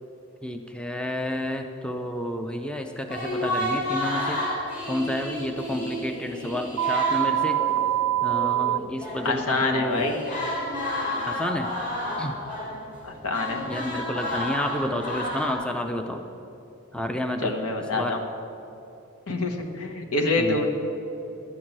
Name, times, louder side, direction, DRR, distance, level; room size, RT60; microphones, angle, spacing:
voice 1, 0.4-4.4 4.9-7.6 8.2-10.1 11.3-11.7 12.2-12.3 13.7-16.2 16.9-17.5 17.8-18.2 20.4-20.7, left 1 dB, 5° left, 6 dB, 0.4 m, -30 dB
sound 1, 3.1-9.4 9.9-15.5, left 1 dB, 35° left, 2.9 m, -31 dB
sound 2, 6.8-8.8, right 14 dB, 70° right, 0.3 m, -24 dB
voice 2, 9.2-10.1 13.1-13.6 17.4-18.2 19.3-20.7, left 2 dB, 90° left, 3 dB, 1.3 m, -26 dB
11.5 x 6.3 x 8.7 m, 2.9 s
head